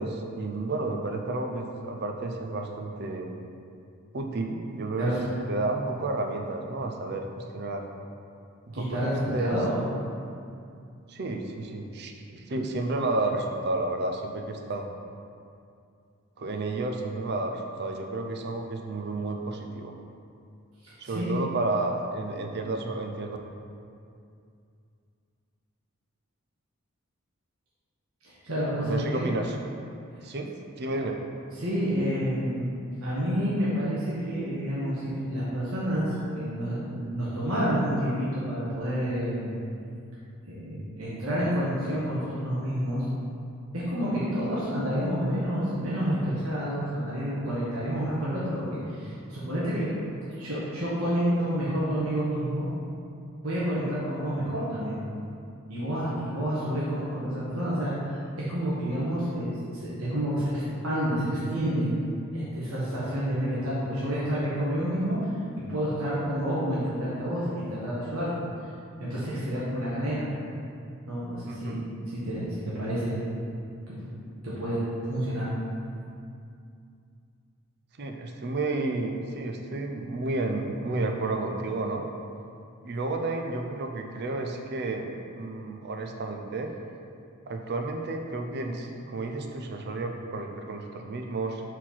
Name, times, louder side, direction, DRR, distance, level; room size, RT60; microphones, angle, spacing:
voice 1, 0.0-3.3 4.1-5.1 5.5-7.8 8.7-9.0 9.3-9.6 11.1-14.9 16.4-20.0 21.0-23.4 28.8-29.6 30.2-30.5 30.8-31.2 71.5-71.8 78.0-82.1 82.8-85.1 85.3-86.7 87.5-91.6, right 2 dB, 50° right, 4 dB, 0.6 m, -31 dB
voice 2, 5.0-5.3 8.7-9.8 20.8-21.4 28.2-29.2 30.1-30.2 31.6-32.7 33.0-39.5 40.5-43.0 43.7-49.9 50.4-52.7 53.4-55.0 55.7-58.2 58.5-61.9 62.3-65.3 65.6-68.3 69.0-70.3 71.1-71.8 72.1-73.2 73.9-74.1 74.4-74.8 75.1-75.5, equal, 75° right, -9 dB, 1.4 m, -29 dB
4.5 x 4.4 x 5.7 m, 2.4 s
head